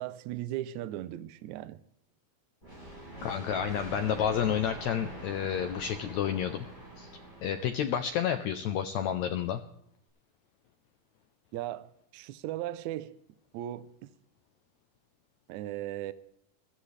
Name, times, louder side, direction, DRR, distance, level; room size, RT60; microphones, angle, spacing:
voice 1, 0.0-1.8 3.9-4.1 11.5-13.1 13.5-14.1 15.5-16.1, right 13 dB, 80° right, 1.7 m, -37 dB
sound 1, 2.6-8.3, right 1 dB, 10° left, 7.6 m, -45 dB
voice 2, 3.2-6.6 7.0-7.1 7.4-9.6, left 9 dB, 85° left, 1.6 m, -30 dB
20.5 x 13.5 x 3.2 m
omnidirectional pair, 4.1 m